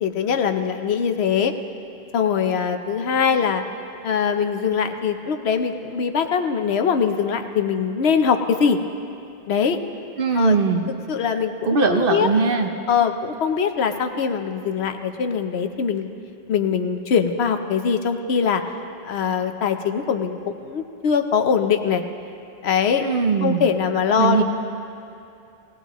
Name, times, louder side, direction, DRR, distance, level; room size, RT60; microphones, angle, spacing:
voice 1, 0.0-1.5 2.1-3.6 4.0-8.8 9.5-9.8 10.3-10.6 11.1-11.5 11.9-12.3 12.9-16.1 16.5-18.6 19.0-22.0 22.6-23.0 23.4-24.4, left 6 dB, 90° left, 7 dB, 1.0 m, -22 dB
voice 2, 10.2-10.8 11.6-12.7 23.0-23.7 24.2-24.4, right 4 dB, 60° right, 4 dB, 1.0 m, -20 dB
19.0 x 17.0 x 3.0 m, 2.6 s
omnidirectional pair, 1.0 m